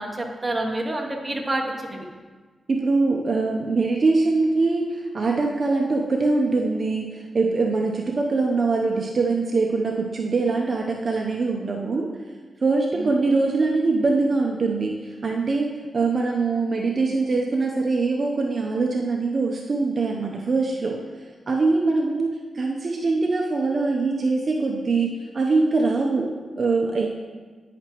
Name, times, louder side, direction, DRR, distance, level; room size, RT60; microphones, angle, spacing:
voice 1, 0.0-2.1 12.9-13.1, right 1 dB, 15° right, 0 dB, 1.0 m, -28 dB
voice 2, 2.7-12.1 12.6-14.9 15.2-21.0 21.5-27.1, right 3 dB, 45° right, 0 dB, 0.6 m, -23 dB
10.0 x 5.8 x 3.0 m, 1.4 s
wide cardioid pair, 105°, 0 cm